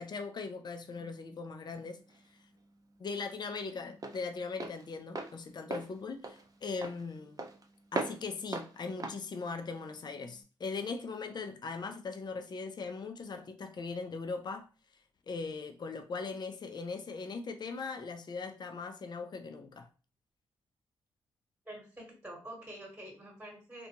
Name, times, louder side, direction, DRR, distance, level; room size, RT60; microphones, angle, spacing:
voice 1, 0.0-2.0 3.0-7.5 7.9-14.7 15.3-19.9, left 4 dB, 45° left, 0.5 m, -39 dB
Walk footsteps, 1.7-10.4, right 3 dB, 35° right, 0.6 m, -42 dB
voice 2, 21.6-23.9, right 1 dB, 10° right, 1.2 m, -47 dB
2.5 x 2.2 x 2.9 m
supercardioid pair, 45°, 11 cm